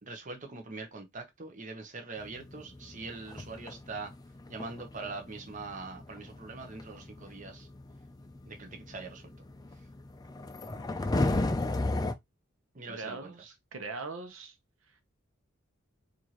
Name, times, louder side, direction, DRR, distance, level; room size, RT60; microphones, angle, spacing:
voice 1, 0.0-4.1 4.5-7.7 8.5-9.3 12.7-13.3, right 3 dB, 40° right, 0.9 m, -42 dB
sound 1, 2.2-12.1, left 2 dB, 20° left, 0.4 m, -35 dB
voice 2, 12.9-14.6, right 3 dB, 85° right, 0.8 m, -41 dB
4.6 x 2.6 x 2.9 m
head